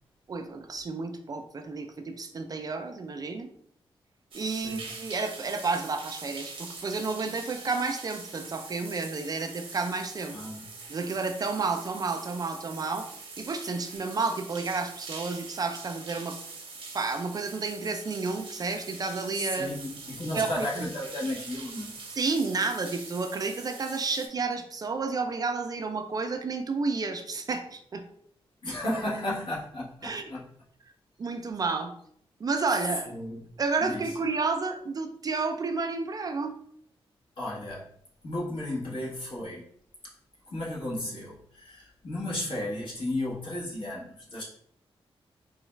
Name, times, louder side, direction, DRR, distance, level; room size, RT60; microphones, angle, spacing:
voice 1, 0.3-3.5 4.3-10.4 10.9-13.1 13.4-16.4 16.9-19.7 20.3-20.9 22.2-28.0 30.0-30.3 31.2-31.9 32.4-33.1 33.6-36.6, right 4 dB, 40° right, 6 dB, 0.4 m, -31 dB
sound 1, 4.3-24.3, right 4 dB, 60° right, 0.8 m, -43 dB
voice 2, 4.5-4.8 10.3-10.6 19.3-22.0 28.6-30.4 33.0-33.4 33.8-34.1 37.4-37.9 38.2-39.7 40.0-40.1 40.5-44.4, left 1 dB, 55° left, -6 dB, 1.4 m, -34 dB
3.9 x 2.3 x 3.1 m, 0.65 s
wide cardioid pair, 115°, 10 cm